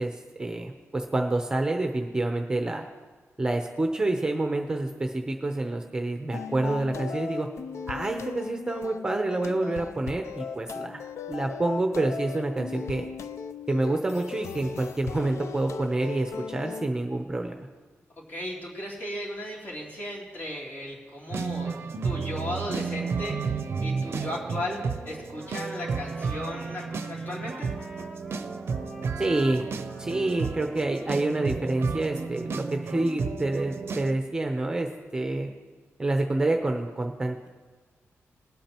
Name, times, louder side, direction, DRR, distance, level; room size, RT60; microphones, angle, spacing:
voice 1, 0.0-2.9 3.4-7.5 7.9-11.0 11.3-13.1 13.7-17.6 29.2-29.6 30.0-35.5 36.0-37.5, right 2 dB, 15° right, 4 dB, 0.7 m, -28 dB
sound 1, 6.3-16.9, left 6 dB, 80° left, 0.4 m, -38 dB
voice 2, 18.2-21.8 22.0-24.8 25.0-27.7, left 1 dB, 45° left, -4 dB, 3.0 m, -36 dB
sound 2, 21.3-34.1, right 5 dB, 55° right, 0.5 m, -32 dB
Trumpet, 25.4-32.5, equal, 20° left, 1.2 m, -49 dB
20.0 x 8.7 x 3.0 m, 1.4 s
wide cardioid pair, 170°, 5 cm